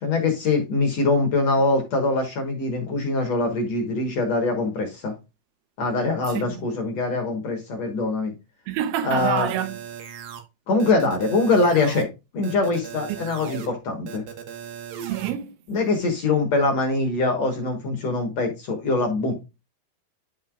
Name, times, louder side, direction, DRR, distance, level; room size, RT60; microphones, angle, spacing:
voice 1, 0.0-5.1 5.8-8.3 9.0-9.5 10.7-12.1 12.3-14.2 15.7-19.4, left 3 dB, 60° left, 1.9 m, -23 dB
voice 2, 6.3-6.6 8.7-9.8 15.0-15.6, right 10 dB, 90° right, 2.9 m, -27 dB
sound 1, 9.2-10.4 10.8-12.0 12.4-13.7 14.1-15.3, right 9 dB, 70° right, 2.9 m, -37 dB
11.0 x 5.3 x 2.4 m
omnidirectional pair, 4.5 m